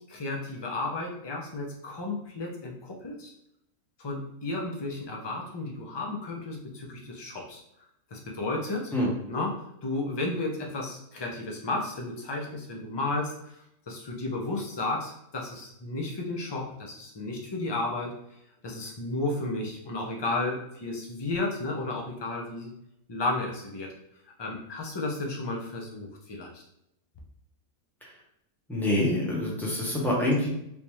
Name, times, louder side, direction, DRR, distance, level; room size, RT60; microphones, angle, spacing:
voice 1, 0.0-3.3 4.0-7.6 8.1-8.9 9.3-13.4 13.9-18.1 18.6-22.7 23.1-23.9 24.4-26.5, left 2 dB, 35° left, -1 dB, 0.4 m, -33 dB
voice 2, 28.7-30.5, left 1 dB, ahead, -5 dB, 0.8 m, -26 dB
3.6 x 2.7 x 3.0 m, 0.77 s
omnidirectional pair, 1.4 m